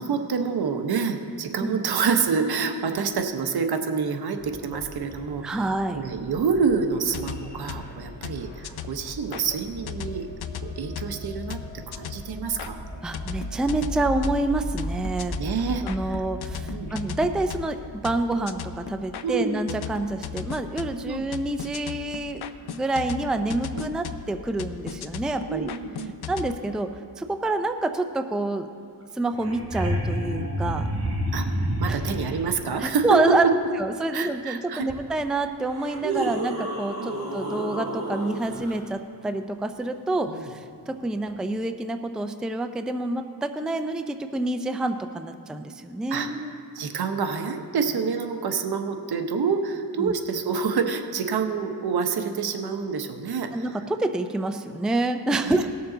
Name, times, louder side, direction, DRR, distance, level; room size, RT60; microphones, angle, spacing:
voice 1, 0.0-10.3 10.8-11.6 11.9-12.9 15.4-16.2 16.7-16.9 19.2-19.6 21.0-21.3 23.7-24.0 25.5-26.1 31.3-31.5 31.8-33.2 33.4-33.5 34.1-34.9 36.0-36.3 37.0-37.2 40.2-40.5 46.1-46.3 46.7-53.7 55.4-55.6, right 5 dB, 70° right, 6 dB, 0.9 m, -27 dB
sound 1, 4.4-17.5, right 1 dB, 20° left, 1.3 m, -37 dB
voice 2, 5.4-6.0 13.0-15.4 15.8-22.4 22.7-25.7 26.3-26.9 27.2-28.7 29.2-30.8 31.9-32.0 32.8-33.4 33.8-40.6 40.9-46.6 50.0-50.1 53.5-55.7, right 2 dB, ahead, 7 dB, 0.4 m, -27 dB
sound 2, 7.0-9.4 9.9-12.7 13.1-26.6, left 8 dB, 70° left, 0.6 m, -38 dB
sound 3, 29.0-29.1 29.3-32.4 34.9-35.0 35.6-38.8 41.3-41.4, equal, 40° right, 2.8 m, -29 dB
18.0 x 6.8 x 3.9 m, 2.3 s
wide cardioid pair, 100°, 39 cm